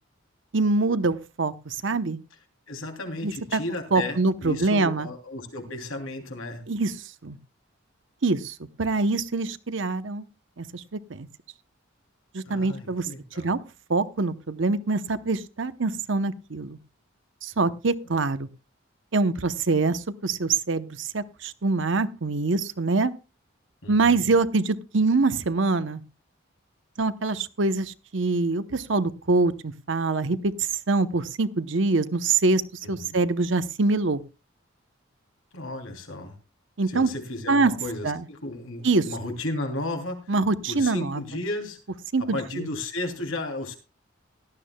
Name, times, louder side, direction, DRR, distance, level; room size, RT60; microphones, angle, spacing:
voice 1, 0.5-2.2 3.2-3.6 3.9-5.1 6.7-6.9 7.2-7.4 8.2-10.3 10.6-11.3 12.3-13.1 13.4-13.6 13.9-16.8 17.4-18.5 19.1-23.1 23.9-26.0 27.0-32.6 32.9-34.2 36.8-37.1 37.5-37.7 38.0-38.2 38.8-39.1 40.3-41.2 42.1-42.7, right 3 dB, 65° right, 12 dB, 0.8 m, -24 dB
voice 2, 2.7-6.6 12.4-13.5 23.8-24.3 32.8-33.1 35.5-36.3 36.9-40.2 40.7-41.8 42.2-43.8, left 2 dB, 85° left, 4 dB, 2.9 m, -34 dB
17.5 x 12.5 x 2.2 m, 0.30 s
head